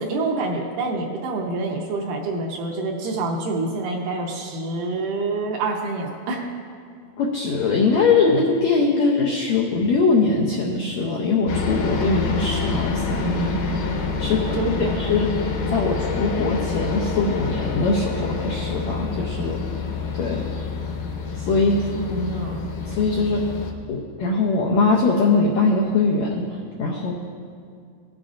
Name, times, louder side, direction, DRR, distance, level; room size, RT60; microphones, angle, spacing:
voice 1, 0.0-6.5 14.5-15.0 22.0-22.7, right 3 dB, 75° right, 0 dB, 2.1 m, -27 dB
voice 2, 7.2-13.8 14.2-14.5 15.0-15.3 15.7-19.6 20.1-20.5 21.4-21.8 22.9-23.5 23.9-26.4 26.8-27.1, left 4 dB, 90° left, -2 dB, 1.5 m, -21 dB
sound 1, 11.5-23.7, left 4 dB, 70° left, 2.3 m, -27 dB
19.0 x 7.3 x 2.5 m, 2.2 s
omnidirectional pair, 4.2 m